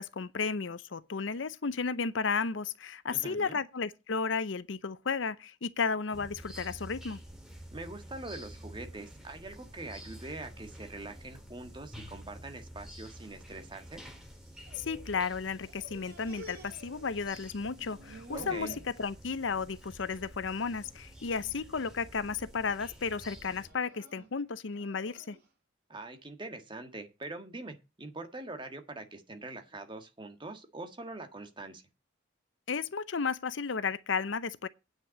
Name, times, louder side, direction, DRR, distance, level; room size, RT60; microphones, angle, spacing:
voice 1, 0.0-7.2 14.8-25.4 32.7-34.7, left 5 dB, 70° left, 0.7 m, -33 dB
voice 2, 3.1-3.6 7.7-14.0 18.3-18.8 25.9-31.8, right 2 dB, 25° right, 1.6 m, -43 dB
sound 1, 6.1-23.7, equal, 5° right, 2.3 m, -49 dB
sound 2, 14.3-15.3 15.6-17.5 17.8-18.9 19.4-19.8 20.1-20.3 21.1-21.5 22.0-22.4 23.3-25.5, right 1 dB, 50° right, 4.9 m, -50 dB
9.2 x 5.9 x 8.1 m
head